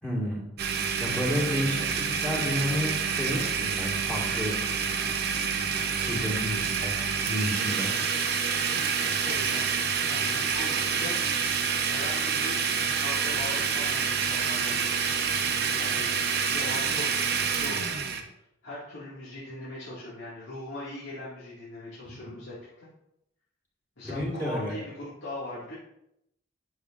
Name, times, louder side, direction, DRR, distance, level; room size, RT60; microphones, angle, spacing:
voice 1, 0.0-0.4 1.0-4.6 6.0-7.9 22.2-22.3 24.1-24.8, left 1 dB, 10° left, -4 dB, 1.5 m, -31 dB
Domestic sounds home sounds, 0.6-18.2, right 6 dB, 55° right, 0.7 m, -28 dB
voice 2, 9.0-9.7 10.1-11.2 11.9-12.6 13.0-16.1 16.5-18.0 18.6-22.9 24.0-25.7, left 1 dB, 80° left, -8 dB, 2.0 m, -40 dB
10.0 x 6.5 x 2.5 m, 0.81 s
head